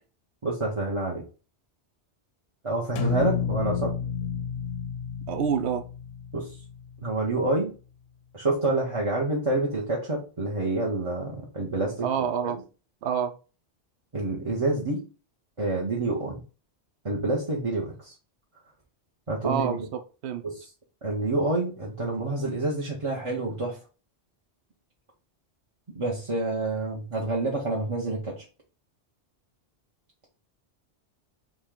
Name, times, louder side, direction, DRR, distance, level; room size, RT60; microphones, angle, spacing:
voice 1, 0.4-1.2 2.6-3.9 6.3-6.5 7.0-7.7 8.3-12.6 14.1-15.1 15.6-16.4 17.0-18.1 19.3-19.9 20.4-20.7 21.0-23.8 25.9-28.4, right 2 dB, 30° right, 1.0 m, -28 dB
sound 1, 3.0-7.2, left 7 dB, 70° left, 0.8 m, -31 dB
voice 2, 5.3-5.8 12.0-12.6 13.0-13.3 19.4-20.4, right 8 dB, 75° right, 0.9 m, -27 dB
4.2 x 3.2 x 3.7 m
omnidirectional pair, 1.1 m